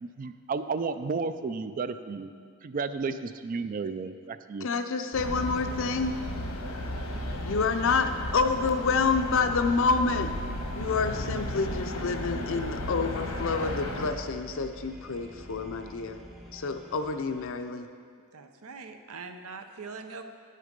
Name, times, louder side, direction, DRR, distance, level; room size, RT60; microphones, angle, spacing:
voice 1, 0.0-2.3 2.6-4.7, right 4 dB, 40° right, 11 dB, 0.4 m, -32 dB
voice 2, 4.6-6.2 7.4-10.3 10.7-16.2 16.5-17.9, left 4 dB, 60° left, 8 dB, 0.6 m, -28 dB
sound 1, 5.1-14.1, left 1 dB, 90° left, 1.2 m, -34 dB
sound 2, 6.8-17.5, equal, ahead, 0.6 m, -48 dB
voice 3, 18.3-20.2, right 4 dB, 80° right, 7 dB, 0.7 m, -42 dB
10.0 x 6.6 x 5.2 m, 2.1 s
head